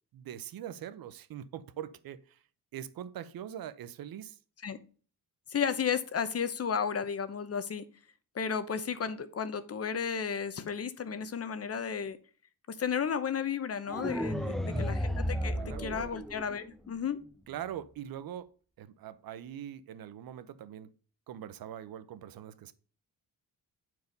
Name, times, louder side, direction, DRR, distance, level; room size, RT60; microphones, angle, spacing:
voice 1, 0.1-2.4 2.7-4.4 14.3-15.0 15.3-16.2 17.5-18.5 18.8-20.9 21.3-22.7, right 10 dB, 70° right, 0.8 m, -43 dB
voice 2, 5.5-7.8 8.3-12.2 12.7-17.2, left 7 dB, 40° left, 0.9 m, -33 dB
sound 1, 13.9-16.9, equal, ahead, 0.7 m, -33 dB
9.4 x 4.7 x 5.3 m
cardioid pair, 90°, 37 cm